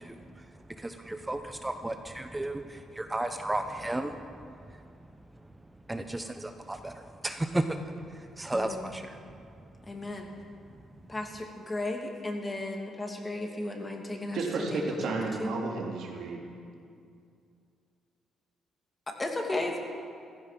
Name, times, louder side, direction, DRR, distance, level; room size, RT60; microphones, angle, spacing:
voice 1, 0.0-4.9 5.9-9.2 9.6-9.7, right 1 dB, 15° right, 7 dB, 0.9 m, -34 dB
voice 2, 8.5-8.8 9.9-10.3 11.1-14.4 14.7-15.6 19.1-19.8, left 2 dB, 20° left, 2 dB, 2.7 m, -35 dB
voice 3, 14.3-16.4, right 3 dB, 75° right, -1 dB, 3.1 m, -32 dB
15.0 x 15.0 x 6.0 m, 2.4 s
cardioid pair, 90°, 0 cm